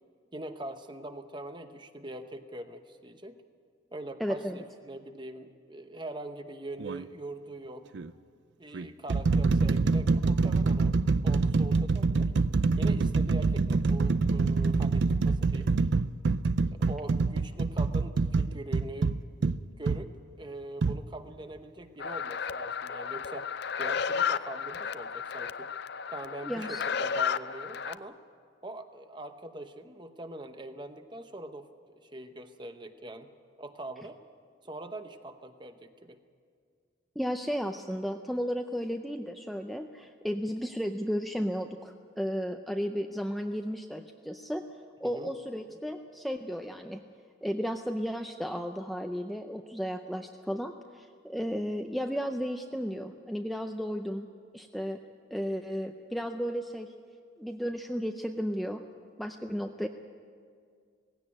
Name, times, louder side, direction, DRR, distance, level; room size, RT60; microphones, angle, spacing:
voice 1, 0.3-3.4 3.9-7.8 8.6-10.9 11.2-12.3 12.8-15.7 16.7-19.1 19.4-23.5 23.8-25.7 26.1-28.2 28.6-33.3 33.6-34.2 34.6-36.2 45.0-45.3, right 1 dB, 20° right, 8 dB, 0.9 m, -43 dB
voice 2, 4.2-4.6 26.5-26.8 37.2-44.7 45.0-47.0 47.4-54.3 54.5-55.0 55.3-56.9 57.4-58.8 59.2-59.9, equal, ahead, 4 dB, 0.5 m, -34 dB
sound 1, 6.8-7.0 7.9-8.1 8.7-20.0 20.8-21.0, right 4 dB, 60° right, 0.4 m, -26 dB
sound 2, 22.0-27.9, left 7 dB, 55° left, 0.4 m, -33 dB
18.0 x 16.5 x 9.7 m, 2.1 s
head